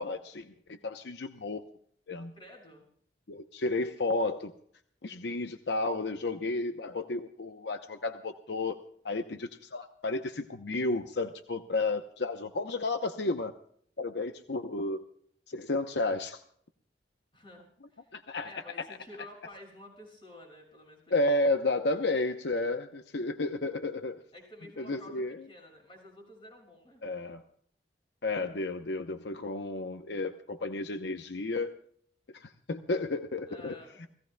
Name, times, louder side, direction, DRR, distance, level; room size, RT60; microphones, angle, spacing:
voice 1, 0.0-1.6 2.1-2.3 3.3-4.5 5.0-8.8 9.0-13.5 14.0-15.0 15.5-16.4 18.1-18.5 18.8-18.9 21.1-24.2 24.8-25.4 27.0-27.4 28.2-31.7 32.3-34.1, left 2 dB, 75° left, 7 dB, 0.8 m, -32 dB
voice 2, 2.4-2.8 17.3-17.6 17.9-18.1 18.4-21.2 24.3-27.0 33.5-34.0, left 1 dB, 30° left, 1 dB, 6.6 m, -51 dB
29.5 x 17.5 x 2.2 m, 0.62 s
head